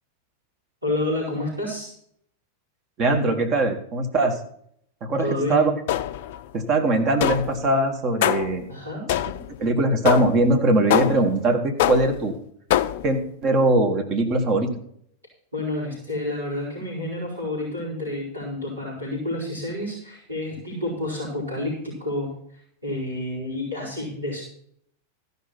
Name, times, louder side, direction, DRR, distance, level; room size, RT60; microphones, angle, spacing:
voice 1, 0.8-1.9 5.2-5.7 8.7-9.1 15.5-22.3 22.8-24.4, left 1 dB, 80° right, -5 dB, 4.6 m, -29 dB
voice 2, 3.0-4.4 5.0-5.7 6.5-8.7 9.6-12.3 13.0-14.7, right 2 dB, 35° right, 5 dB, 1.6 m, -21 dB
sound 1, 5.9-6.4 7.2-7.6 8.2-8.6 9.1-9.6 10.1-10.5 10.9-11.4 11.8-12.3 12.7-13.2, left 12 dB, 50° left, 0.5 m, -23 dB
14.0 x 5.5 x 6.0 m, 0.67 s
figure-of-eight pair, 90°, 0 cm